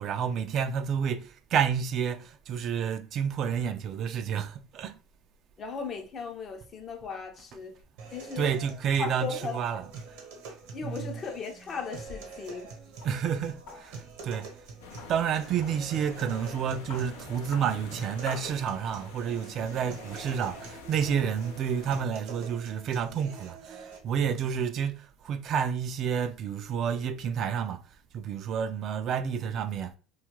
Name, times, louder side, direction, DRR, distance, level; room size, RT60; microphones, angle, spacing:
voice 1, 0.0-5.0 8.4-9.8 10.8-11.1 13.0-14.5 15.1-27.8 28.1-30.0, right 7 dB, 50° right, 0.3 m, -30 dB
voice 2, 5.6-7.7 8.1-8.6 9.0-9.8 10.7-12.7, left 5 dB, 40° left, 0.6 m, -37 dB
sound 1, 8.0-24.0, right 4 dB, 75° right, 0.8 m, -46 dB
sound 2, 11.6-19.2, left 5 dB, 70° left, 0.9 m, -50 dB
sound 3, 14.8-22.1, left 5 dB, 90° left, 0.5 m, -47 dB
2.7 x 2.3 x 3.0 m
supercardioid pair, 90°, 0 cm